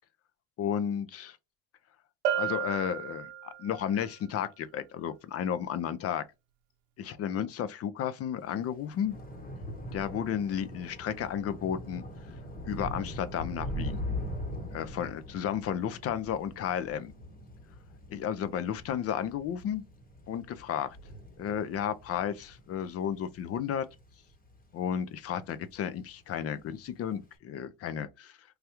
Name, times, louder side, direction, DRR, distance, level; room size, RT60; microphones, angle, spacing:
voice 1, 0.6-1.4 2.4-6.2 7.0-9.2 9.9-12.0 12.7-14.0 14.7-17.1 18.1-19.8 20.3-21.0 21.4-23.9 24.7-28.4, left 9 dB, 35° left, 0.4 m, -33 dB
Bell, 2.2-3.8, right 9 dB, 75° right, 0.7 m, -32 dB
Thunder / Rain, 8.5-25.1 25.4-25.9 26.1-26.3, equal, 20° left, 1.0 m, -41 dB
3.4 x 2.3 x 2.8 m
supercardioid pair, 105°, 45 cm